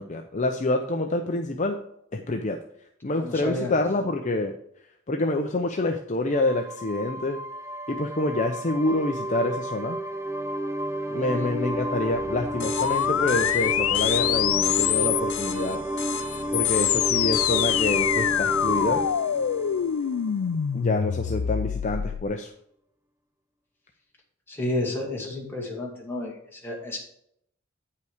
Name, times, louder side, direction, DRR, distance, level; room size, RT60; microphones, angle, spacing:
voice 1, 0.0-1.8 2.1-2.6 3.0-4.5 5.1-7.4 7.9-10.0 11.1-15.8 16.5-19.0 20.7-22.5, left 2 dB, 35° left, 4 dB, 0.6 m, -27 dB
voice 2, 3.1-3.7 11.3-11.5 24.5-27.0, left 1 dB, 10° left, -3 dB, 2.3 m, -31 dB
sound 1, 6.3-20.8, right 1 dB, 15° right, 0.5 m, -32 dB
sound 2, 12.6-19.8, left 10 dB, 60° left, 1.1 m, -37 dB
sound 3, 12.8-15.4 16.3-22.2, left 10 dB, 80° left, 0.4 m, -25 dB
9.3 x 5.7 x 5.0 m, 0.72 s
head